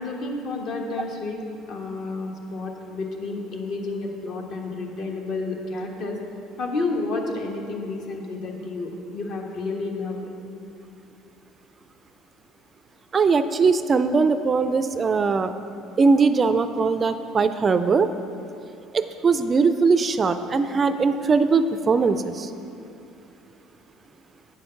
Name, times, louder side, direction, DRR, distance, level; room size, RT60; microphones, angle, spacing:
voice 1, 0.0-6.2 6.6-10.2, left 3 dB, 55° left, 1 dB, 1.3 m, -30 dB
voice 2, 13.1-15.5 16.0-18.1 18.9-22.5, right 4 dB, 25° right, 10 dB, 0.3 m, -20 dB
8.8 x 6.2 x 5.7 m, 2.7 s
cardioid pair, 125°, 0 cm